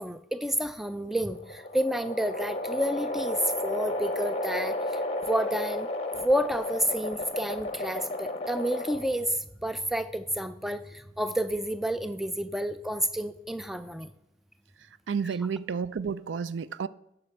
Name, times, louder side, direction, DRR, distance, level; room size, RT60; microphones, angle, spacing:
voice 1, 0.0-5.9 6.2-14.1 15.2-15.4, equal, ahead, 0.3 m, -30 dB
sound 1, 1.1-9.3, left 1 dB, 35° left, 0.8 m, -33 dB
voice 2, 15.1-16.9, right 6 dB, 85° right, 0.4 m, -31 dB
12.5 x 5.0 x 4.5 m
head